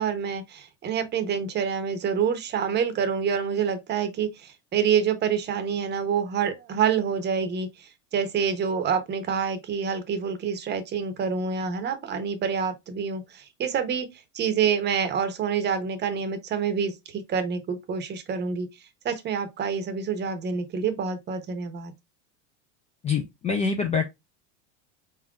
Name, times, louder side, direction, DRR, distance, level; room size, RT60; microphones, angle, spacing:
voice 1, 0.0-4.3 4.7-7.7 8.1-13.2 13.6-14.1 14.3-18.7 19.0-21.9, right 7 dB, 30° right, 0.8 m, -27 dB
voice 2, 23.0-24.1, left 5 dB, 20° left, 0.3 m, -25 dB
4.3 x 3.7 x 2.3 m
supercardioid pair, 130°, 37 cm